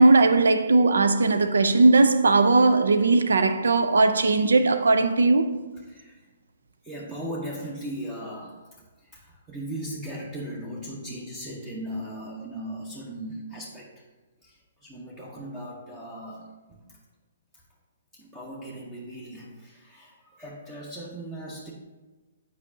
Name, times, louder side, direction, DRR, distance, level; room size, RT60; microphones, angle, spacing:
voice 1, 0.0-5.5, right 3 dB, 75° right, 0.5 m, -18 dB
voice 2, 5.7-6.2 6.8-8.7 9.0-14.1 14.4-17.0 18.1-21.7, right 1 dB, 15° right, 1.0 m, -38 dB
8.2 x 4.8 x 2.8 m
figure-of-eight pair, 125°, 0 cm